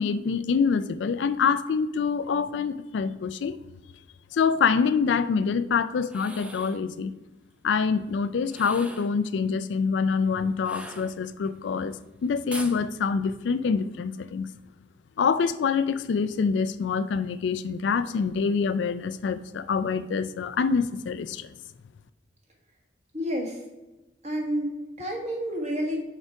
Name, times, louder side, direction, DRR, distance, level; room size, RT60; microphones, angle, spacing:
voice 1, 0.0-3.5 4.3-7.1 7.6-12.0 12.2-14.5 15.2-21.5, left 5 dB, 65° left, 13 dB, 0.3 m, -26 dB
sound 1, 6.0-6.8 8.4-9.2 10.6-11.5 12.5-12.8, right 1 dB, 5° right, 0.5 m, -41 dB
voice 2, 23.1-23.6 24.2-26.0, equal, 35° right, -1 dB, 1.7 m, -29 dB
6.5 x 5.0 x 4.6 m, 1.1 s
head